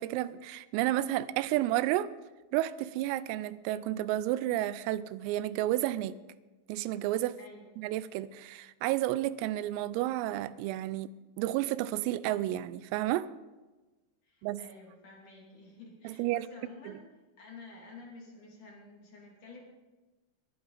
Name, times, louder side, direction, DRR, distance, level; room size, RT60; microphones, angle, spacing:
voice 1, 0.0-2.1 2.5-6.2 6.7-7.4 7.8-11.1 11.4-13.3 14.4-14.6 16.0-16.5 16.9-17.0, right 14 dB, 90° right, 3.3 m, -31 dB
voice 2, 7.4-7.7 14.2-17.0 17.4-19.6, left 3 dB, 45° left, 3.7 m, -51 dB
22.5 x 11.5 x 4.0 m
omnidirectional pair, 5.9 m